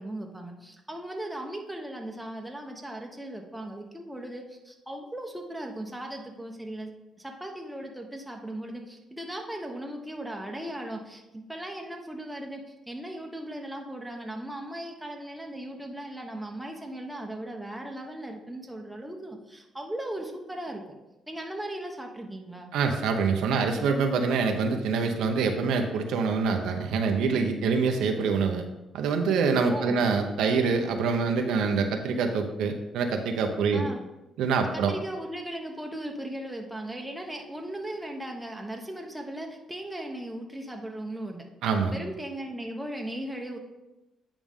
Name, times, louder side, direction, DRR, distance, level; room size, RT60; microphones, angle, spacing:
voice 1, 0.0-20.8 21.3-22.7 29.7-30.0 33.7-34.0 34.7-41.5 41.9-43.6, right 1 dB, 5° right, 1 dB, 1.2 m, -37 dB
voice 2, 22.7-28.6 28.9-33.9 34.4-34.9 41.6-42.0, right 5 dB, 85° right, 5 dB, 0.8 m, -25 dB
9.0 x 4.9 x 3.7 m, 1.0 s
cardioid pair, 90°, 0 cm